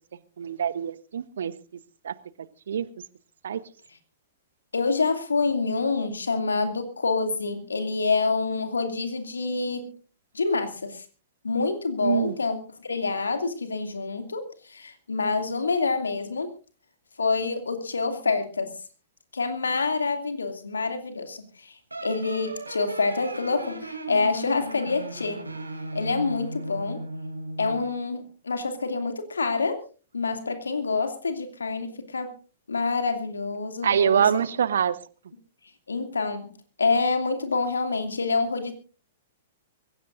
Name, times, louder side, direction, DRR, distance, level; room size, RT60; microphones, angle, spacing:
voice 1, 0.4-1.5 2.0-2.1 2.7-2.9 3.4-3.6 12.0-12.3 33.8-35.0, right 8 dB, 65° right, 17 dB, 1.0 m, -24 dB
voice 2, 4.7-9.9 10.3-11.0 11.4-16.5 17.2-18.7 19.3-21.8 22.0-25.4 25.9-27.0 27.6-29.8 30.1-32.3 32.7-34.3 35.9-36.5 36.8-38.7, left 4 dB, 75° left, 8 dB, 2.5 m, -27 dB
sound 1, 21.9-27.9, right 1 dB, 85° right, 3.0 m, -36 dB
24.5 x 16.0 x 2.6 m, 0.35 s
figure-of-eight pair, 105°, 0 cm